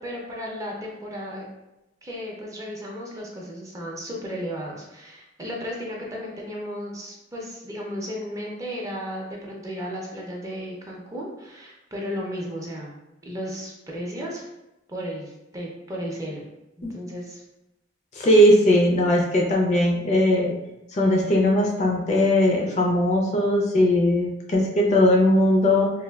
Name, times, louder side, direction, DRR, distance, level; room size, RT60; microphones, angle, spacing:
voice 1, 0.0-1.4 2.0-12.9 13.2-14.5 14.9-16.4 16.8-17.4, equal, 15° right, -2 dB, 0.5 m, -34 dB
voice 2, 18.1-20.5 20.9-25.9, left 1 dB, 35° left, -1 dB, 0.4 m, -19 dB
3.2 x 2.2 x 2.2 m, 0.92 s
head